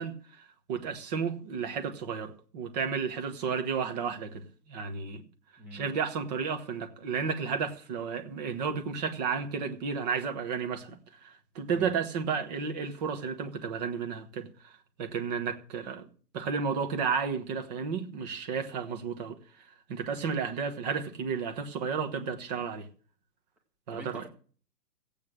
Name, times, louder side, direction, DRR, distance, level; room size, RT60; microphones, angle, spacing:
voice 1, 0.0-5.2 5.7-16.1 16.3-19.4 19.9-22.9 23.9-24.2, right 6 dB, 25° right, 1.2 m, -32 dB
voice 2, 5.6-5.9 11.7-12.0 23.9-24.3, equal, 5° right, 1.0 m, -44 dB
15.5 x 8.4 x 6.2 m
hypercardioid pair, 165°, 50 cm